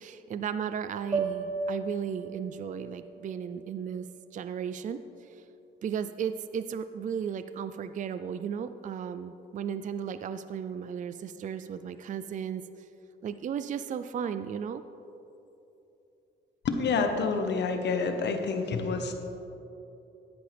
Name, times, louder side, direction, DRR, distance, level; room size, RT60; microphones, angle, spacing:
voice 1, 0.0-4.1 4.3-5.0 5.8-12.6 13.2-14.8, right 7 dB, 40° right, 12 dB, 0.4 m, -35 dB
sound 1, 1.1-5.4, right 4 dB, 20° right, 0.9 m, -37 dB
voice 2, 16.6-19.1, left 4 dB, 60° left, 5 dB, 1.1 m, -28 dB
14.5 x 10.0 x 3.4 m, 3.0 s
cardioid pair, 90°, 20 cm